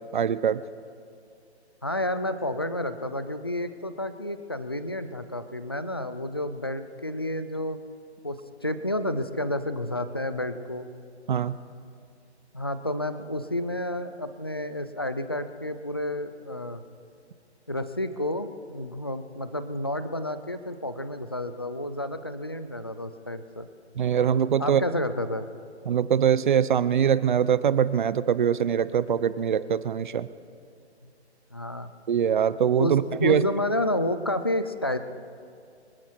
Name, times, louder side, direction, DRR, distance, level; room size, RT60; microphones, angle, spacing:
voice 1, 0.1-0.6 11.3-11.5 24.0-24.8 25.9-30.3 32.1-33.4, right 8 dB, 45° right, 16 dB, 0.6 m, -23 dB
voice 2, 1.8-7.8 8.2-8.4 8.6-10.9 12.5-16.8 17.7-23.7 24.6-25.5 31.5-31.9 32.8-32.9 33.2-35.0, left 1 dB, 25° left, 11 dB, 0.3 m, -30 dB
25.5 x 10.0 x 4.6 m, 2.4 s
hypercardioid pair, 155°, 34 cm